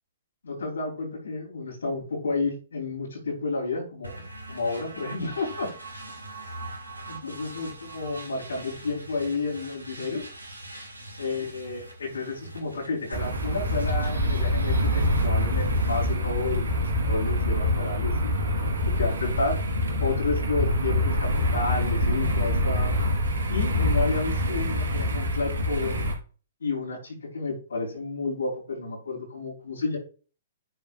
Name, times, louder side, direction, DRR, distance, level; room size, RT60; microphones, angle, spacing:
voice 1, 0.4-5.7 7.1-10.2 11.2-16.6 17.0-18.3 19.0-19.6 20.0-22.9 23.5-26.0 26.6-30.0, left 3 dB, 70° left, -4 dB, 4.3 m, -31 dB
sound 1, 4.0-16.1, right 2 dB, 85° right, 3.2 m, -42 dB
sound 2, 13.1-26.1, left 1 dB, 70° right, 3.8 m, -25 dB
10.5 x 7.1 x 2.6 m, 0.36 s
figure-of-eight pair, 115°, 0 cm